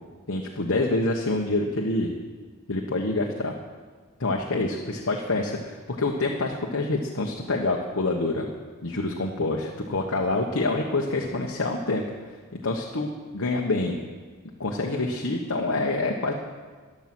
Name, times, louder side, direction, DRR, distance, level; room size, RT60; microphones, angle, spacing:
voice 1, 0.3-2.1 2.7-3.5 4.2-8.5 8.8-12.0 12.6-14.0 14.6-16.3, left 2 dB, 60° left, 0 dB, 1.1 m, -26 dB
15.0 x 11.0 x 6.1 m, 1.5 s
head